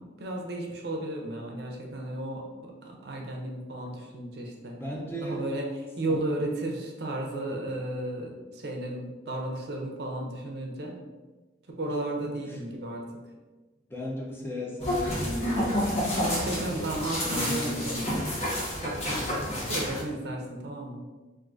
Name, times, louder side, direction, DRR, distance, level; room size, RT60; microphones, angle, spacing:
voice 1, 0.0-4.8 5.2-10.9 11.7-13.1 16.2-18.0 18.8-21.0, right 1 dB, 65° right, 1 dB, 0.5 m, -34 dB
voice 2, 4.8-5.4 6.1-6.2 12.2-12.6 13.9-16.9 17.2-18.3 19.5-19.8, left 1 dB, 15° left, -2 dB, 0.5 m, -36 dB
sound 1, 14.8-20.0, left 1 dB, 40° left, 0.8 m, -29 dB
3.6 x 2.5 x 2.4 m, 1.2 s
head